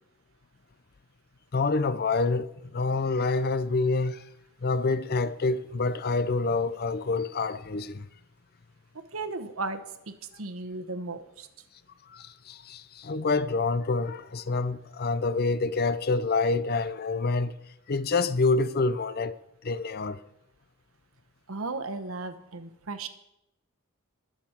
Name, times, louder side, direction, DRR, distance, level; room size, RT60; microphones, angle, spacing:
voice 1, 1.5-4.2 4.6-8.1 12.1-17.5 17.9-20.2, left 3 dB, 45° left, 0.5 m, -27 dB
voice 2, 9.1-11.5 21.5-23.1, right 3 dB, 75° right, 1.1 m, -35 dB
21.5 x 7.2 x 4.4 m
head